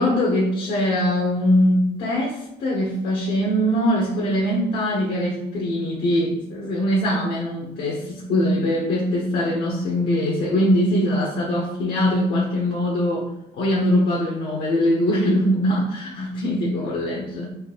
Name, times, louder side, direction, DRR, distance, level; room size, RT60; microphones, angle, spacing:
voice 1, 0.0-13.3 13.5-17.5, equal, 70° left, -4 dB, 1.1 m, -22 dB
4.1 x 2.6 x 4.2 m, 0.84 s
cardioid pair, 110°, 17 cm